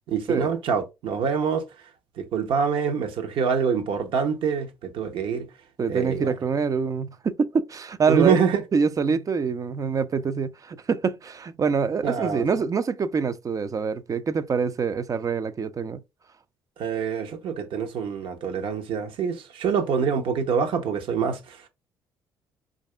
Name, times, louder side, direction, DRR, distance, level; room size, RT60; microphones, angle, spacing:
voice 1, 0.1-1.7 2.2-5.5 5.9-6.3 8.1-8.6 12.0-12.4 16.8-21.6, right 6 dB, 60° right, 1.0 m, -25 dB
voice 2, 5.8-8.4 8.7-16.0, right 5 dB, 35° right, 0.5 m, -25 dB
4.8 x 2.6 x 3.2 m
hypercardioid pair, 55°, 10 cm